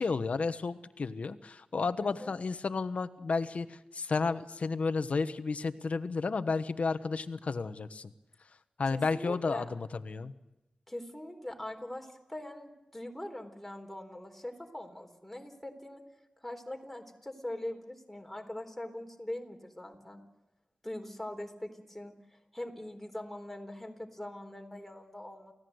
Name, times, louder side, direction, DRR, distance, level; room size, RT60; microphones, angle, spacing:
voice 1, 0.0-8.1 8.8-10.3, left 4 dB, 70° left, 11 dB, 1.2 m, -32 dB
voice 2, 2.0-2.3 8.9-9.7 10.9-16.0 16.4-20.2 20.8-25.5, left 1 dB, 5° left, 3 dB, 3.9 m, -42 dB
29.5 x 16.5 x 8.0 m, 0.99 s
wide cardioid pair, 110°, 2 cm